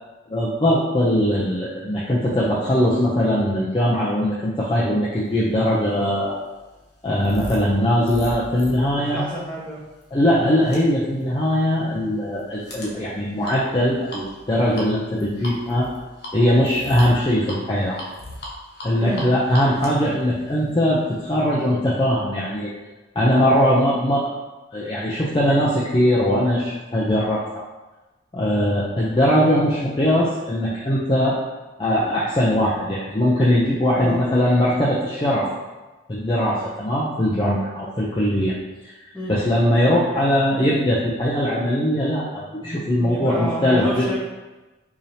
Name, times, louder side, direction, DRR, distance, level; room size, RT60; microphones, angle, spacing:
voice 1, 0.3-6.4 7.0-9.2 10.1-15.9 16.3-18.0 18.8-22.7 23.2-24.3 24.7-27.6 28.3-31.4 31.8-35.5 36.1-38.5 38.8-38.9 39.3-44.1, equal, 25° left, -7 dB, 0.4 m, -20 dB
sound 1, 5.6-21.2, left 1 dB, 60° left, 0.9 m, -39 dB
voice 2, 8.9-9.8 19.0-19.3 33.9-34.2 39.1-39.4 42.6-44.2, equal, 5° left, -7 dB, 0.9 m, -30 dB
4.8 x 2.7 x 2.7 m, 1.1 s
head